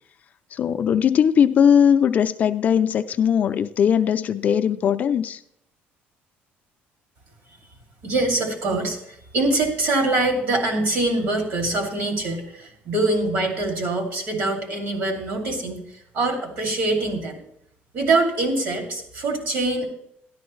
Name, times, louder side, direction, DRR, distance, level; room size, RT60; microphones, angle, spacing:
voice 1, 0.5-5.4, left 8 dB, 35° left, 0.4 m, -19 dB
voice 2, 8.0-15.8 16.1-17.4 17.9-19.9, right 2 dB, 50° right, 2.5 m, -24 dB
13.0 x 11.5 x 3.1 m
cardioid pair, 165°, 4 cm